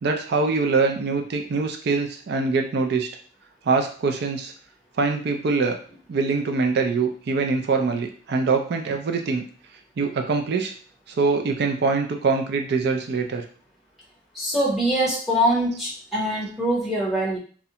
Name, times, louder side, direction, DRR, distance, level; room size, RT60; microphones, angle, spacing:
voice 1, 0.0-3.1 3.7-4.5 5.0-5.8 6.1-9.5 10.0-10.7 11.1-13.4, right 4 dB, 60° right, 4 dB, 0.4 m, -23 dB
voice 2, 14.3-17.4, equal, ahead, -5 dB, 0.7 m, -23 dB
2.5 x 2.1 x 2.7 m, 0.42 s
head